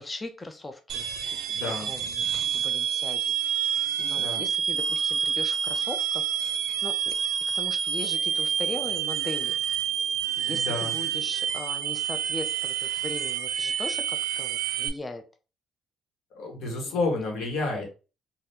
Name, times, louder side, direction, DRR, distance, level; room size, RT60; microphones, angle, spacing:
voice 1, 0.0-3.2 4.0-6.2 6.8-7.1 7.5-9.5 10.4-15.2 16.9-17.0, left 2 dB, 15° left, 6 dB, 0.3 m, -39 dB
sound 1, 0.9-14.9, right 8 dB, 80° right, 0.4 m, -28 dB
voice 2, 1.5-1.9 4.2-4.4 10.5-10.9 16.3-17.9, left 3 dB, 80° left, 1 dB, 1.2 m, -30 dB
3.4 x 2.3 x 2.7 m, 0.32 s
cardioid pair, 135°, 0 cm